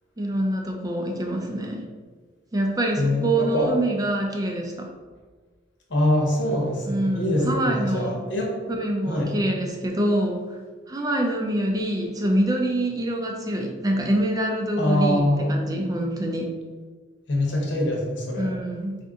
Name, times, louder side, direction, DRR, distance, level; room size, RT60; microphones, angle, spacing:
voice 1, 0.2-1.8 2.5-4.9 6.9-8.2 8.7-10.6 10.9-16.5 18.4-19.0, right 1 dB, 20° right, 1 dB, 0.4 m, -25 dB
voice 2, 3.0-3.7 5.9-8.5 9.1-9.3 14.8-15.6 17.3-18.6, left 1 dB, 75° left, -2 dB, 1.0 m, -24 dB
3.7 x 2.6 x 3.6 m, 1.4 s
head